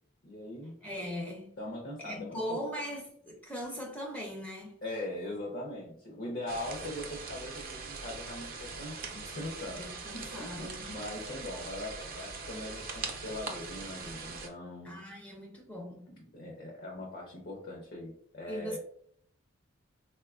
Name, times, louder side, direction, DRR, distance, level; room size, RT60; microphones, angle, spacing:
voice 1, 0.2-0.8 1.6-2.6 4.8-9.9 10.1-15.0 16.1-18.8, left 1 dB, 50° left, 0.6 m, -41 dB
voice 2, 0.8-1.5 2.0-4.7 9.7-10.9 14.8-16.1 18.5-18.8, equal, 10° left, 0.4 m, -39 dB
sound 1, 6.5-14.5, right 4 dB, 45° right, 0.5 m, -42 dB
4.0 x 2.2 x 2.3 m
head